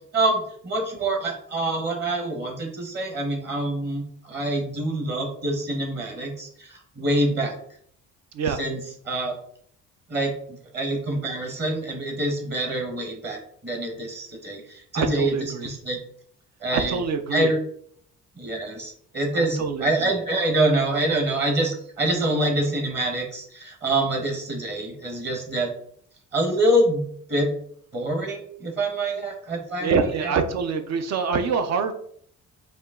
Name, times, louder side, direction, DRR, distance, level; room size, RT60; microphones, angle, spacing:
voice 1, 0.1-7.6 8.6-9.3 10.1-10.3 10.7-16.0 16.6-17.0 17.3-17.6 18.4-25.7 26.3-27.0 27.3-27.5 27.9-30.3, right 1 dB, 35° right, 3 dB, 1.3 m, -26 dB
voice 2, 14.9-15.7 16.7-17.5 19.3-20.1 29.8-31.9, right 5 dB, 60° right, 7 dB, 0.7 m, -25 dB
5.0 x 2.5 x 3.7 m, 0.63 s
cardioid pair, 90°, 30 cm